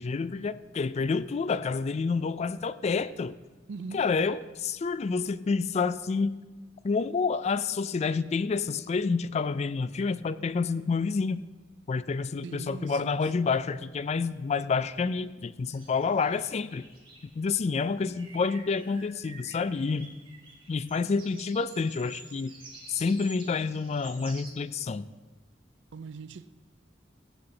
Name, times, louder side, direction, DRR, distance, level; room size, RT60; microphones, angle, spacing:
voice 1, 0.0-3.3 3.9-6.4 6.8-11.4 11.9-16.9 17.4-20.1 20.7-22.5 22.9-25.1, left 4 dB, 35° left, 0.3 m, -28 dB
voice 2, 3.7-4.0 12.4-13.2 25.9-26.5, right 4 dB, 75° right, 0.4 m, -41 dB
sound 1, 15.7-17.8 18.1-24.5, right 3 dB, 30° right, 2.6 m, -50 dB
16.0 x 8.0 x 3.9 m
head